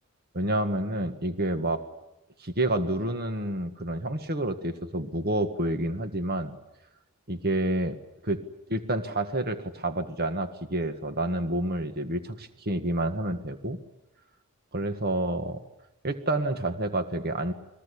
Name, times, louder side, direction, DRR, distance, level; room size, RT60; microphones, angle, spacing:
voice 1, 0.3-1.8 2.4-6.6 7.3-8.0 8.2-8.4 8.7-13.8 14.7-15.6 16.0-17.5, right 1 dB, 45° right, 8 dB, 1.7 m, -29 dB
30.0 x 21.5 x 8.4 m, 0.91 s
head